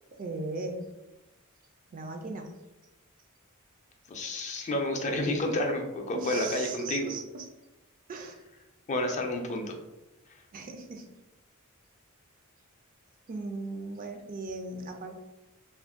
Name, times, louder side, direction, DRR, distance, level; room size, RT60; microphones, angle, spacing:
voice 1, 0.2-1.0 1.9-2.5 6.1-7.5 8.1-8.4 10.5-11.1 13.3-15.2, right 3 dB, 40° right, 4 dB, 0.4 m, -37 dB
voice 2, 4.1-7.1 8.9-9.7, left 1 dB, 35° left, 3 dB, 0.4 m, -30 dB
2.5 x 2.1 x 3.5 m, 0.99 s
head